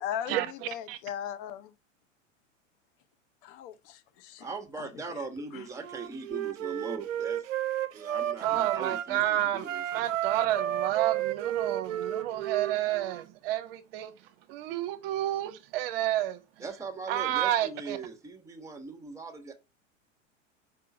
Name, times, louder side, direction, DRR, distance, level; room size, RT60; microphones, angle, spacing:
voice 1, 0.0-1.7 3.4-5.2 5.5-5.7, left 10 dB, 45° left, 0.8 m, -39 dB
voice 2, 4.4-7.5 7.9-9.8 16.6-19.5, right 4 dB, 5° right, 1.1 m, -40 dB
Wind instrument woodwind instrument, 5.7-9.1 9.6-13.3, right 12 dB, 75° right, 0.6 m, -32 dB
voice 3, 8.4-9.6 9.9-14.1 14.5-16.4 17.1-18.0, right 13 dB, 45° right, 0.9 m, -30 dB
5.0 x 3.7 x 5.6 m
figure-of-eight pair, 95°, 39 cm